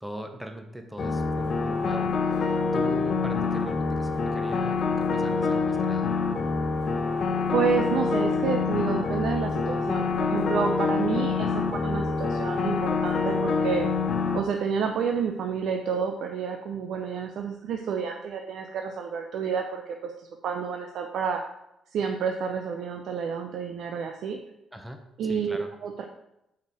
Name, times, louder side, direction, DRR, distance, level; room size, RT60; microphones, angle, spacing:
voice 1, 0.0-6.1 24.7-25.7, equal, 5° right, 4 dB, 1.0 m, -40 dB
sound 1, 1.0-14.4, left 4 dB, 50° left, 0.9 m, -26 dB
voice 2, 7.5-13.8 14.3-21.4 21.9-24.4 25.2-26.0, right 6 dB, 75° right, 4 dB, 0.6 m, -30 dB
5.5 x 5.1 x 6.2 m, 0.85 s
cardioid pair, 90°, 0 cm